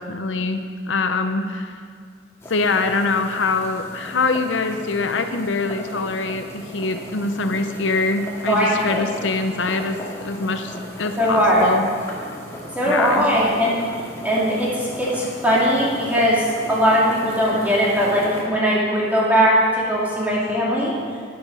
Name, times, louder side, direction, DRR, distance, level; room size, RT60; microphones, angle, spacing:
voice 1, 0.0-1.8 2.5-11.9 12.9-13.3, left 3 dB, 75° left, 7 dB, 0.7 m, -24 dB
sound 1, 2.4-18.4, left 1 dB, 15° left, 2.1 m, -36 dB
voice 2, 8.5-9.0 11.2-11.7 12.8-13.8 14.2-20.9, equal, 10° right, -6 dB, 2.4 m, -19 dB
12.0 x 10.5 x 5.4 m, 2.1 s
head